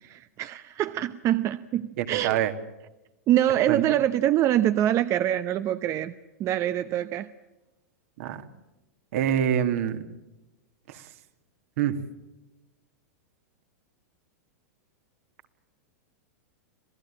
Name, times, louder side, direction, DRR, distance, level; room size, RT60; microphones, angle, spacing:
voice 1, 0.0-2.4 3.3-6.1 6.4-7.3, right 12 dB, 35° right, 12 dB, 0.8 m, -25 dB
voice 2, 2.0-2.5 3.7-3.8 8.2-8.4 9.1-10.0 10.9-11.0 11.8-12.0, right 10 dB, 65° right, 8 dB, 2.3 m, -25 dB
27.0 x 17.5 x 8.8 m, 1.0 s
hypercardioid pair, 125°, 9 cm